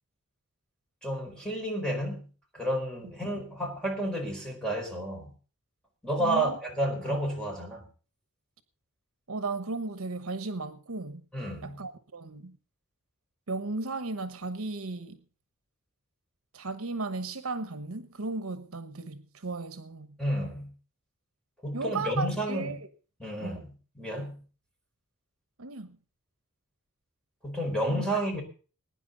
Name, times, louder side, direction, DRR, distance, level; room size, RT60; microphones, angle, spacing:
voice 1, 1.0-2.3 2.5-5.3 6.0-7.9 11.3-11.8 20.2-20.7 21.6-22.8 23.2-24.4 27.4-28.4, right 1 dB, 5° left, 4.5 m, -31 dB
voice 2, 6.2-6.6 9.3-11.2 11.6-12.6 13.5-15.2 16.5-20.2 21.7-22.8 23.4-23.6 25.6-26.0 27.9-28.0, right 3 dB, 65° right, 1.1 m, -35 dB
21.5 x 10.0 x 3.9 m
head